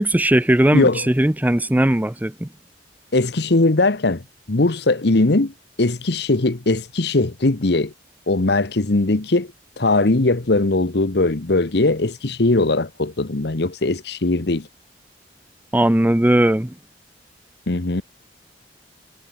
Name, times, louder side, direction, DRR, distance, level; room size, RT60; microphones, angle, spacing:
voice 1, 0.0-2.5 15.7-16.7, right 1 dB, 10° right, 0.6 m, -18 dB
voice 2, 0.7-1.1 3.1-4.2 4.5-5.5 5.8-7.9 8.3-14.7 17.7-18.0, left 2 dB, 65° left, 1.2 m, -20 dB
head